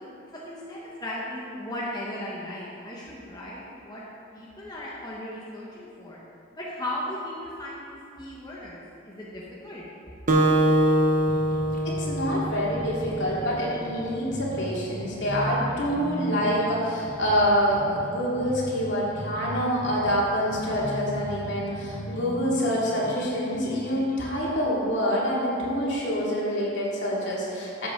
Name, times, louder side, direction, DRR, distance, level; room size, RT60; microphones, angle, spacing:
voice 1, 0.0-4.0 4.3-6.2 6.5-8.8 9.0-9.9, left 1 dB, 20° left, -6 dB, 1.2 m, -36 dB
Acoustic guitar, 10.3-13.0, right 1 dB, 40° right, 1.0 m, -23 dB
sound 1, 11.3-24.2, equal, 45° left, 1.2 m, -38 dB
voice 2, 11.8-27.9, equal, 65° left, -6 dB, 2.5 m, -26 dB
12.0 x 7.6 x 3.8 m, 2.5 s
head